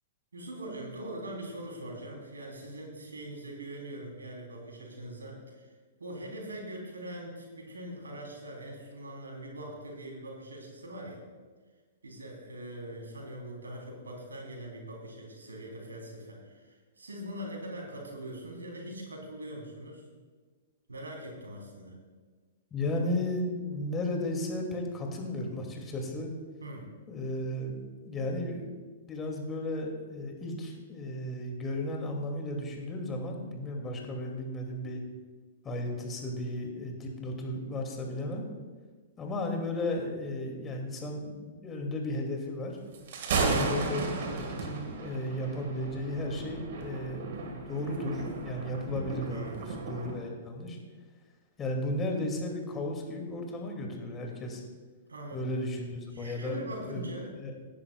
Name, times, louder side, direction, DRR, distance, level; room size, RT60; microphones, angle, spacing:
voice 1, 0.3-5.7 6.0-11.2 12.0-20.1 20.9-22.0 26.6-26.9 43.0-43.7 49.3-49.6 55.1-55.5 56.1-57.3, right 1 dB, 85° right, -1 dB, 3.7 m, -42 dB
voice 2, 22.7-26.3 27.1-27.7 28.1-28.6 29.1-35.0 35.6-38.5 39.2-42.8 43.4-50.8 51.6-54.6 55.3-57.1 57.4-57.5, left 1 dB, 20° left, 1 dB, 2.5 m, -34 dB
Thunder, 42.9-50.2, right 4 dB, 60° right, 2.0 m, -34 dB
18.0 x 10.5 x 2.4 m, 1.4 s
hypercardioid pair, 115°, 0 cm